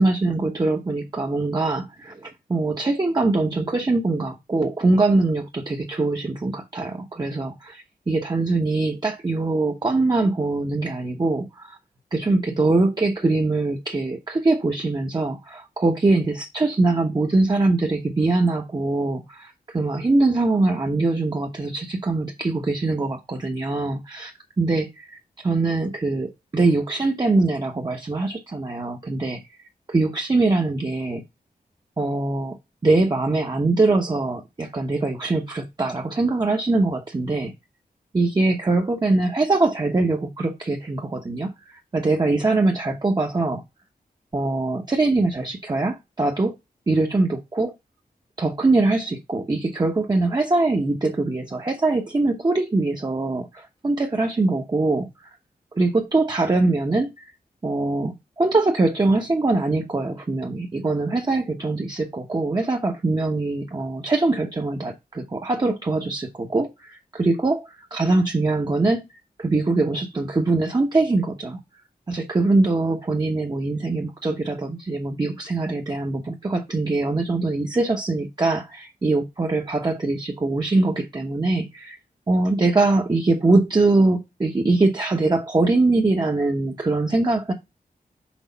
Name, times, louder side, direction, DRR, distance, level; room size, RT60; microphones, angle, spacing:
voice 1, 0.0-11.8 12.1-29.4 29.9-31.2 32.0-32.6 32.8-37.5 38.1-43.6 44.3-46.6 46.9-47.7 48.4-55.4 55.7-57.2 57.6-69.1 69.4-71.6 72.1-82.0 82.3-87.5, right 2 dB, 30° right, 0.9 m, -22 dB
6.2 x 4.8 x 4.0 m
wide cardioid pair, 135°, 15 cm